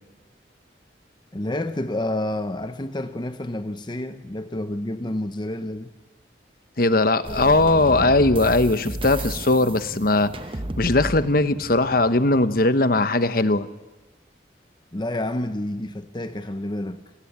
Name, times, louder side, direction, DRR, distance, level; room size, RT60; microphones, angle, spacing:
voice 1, 1.3-5.9 14.9-17.0, left 1 dB, 25° left, 0.8 m, -29 dB
voice 2, 6.8-10.3 10.8-13.7, left 2 dB, 55° left, 1.1 m, -19 dB
sound 1, 7.2-12.8, right 1 dB, 30° right, 0.8 m, -33 dB
28.0 x 18.5 x 8.7 m
head